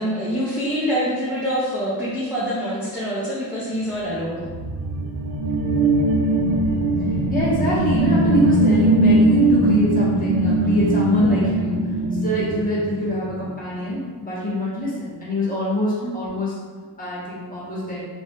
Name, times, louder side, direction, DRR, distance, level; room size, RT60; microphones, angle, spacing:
voice 1, 0.0-4.5 11.2-11.8 16.0-16.1, equal, 5° right, -9 dB, 0.7 m, -25 dB
sound 1, 4.2-13.5, right 2 dB, 40° right, 0.5 m, -20 dB
voice 2, 7.3-11.8 12.2-16.5 17.0-18.0, left 1 dB, 20° left, -7 dB, 1.4 m, -24 dB
3.8 x 2.5 x 3.5 m, 1.5 s
cardioid pair, 135°, 46 cm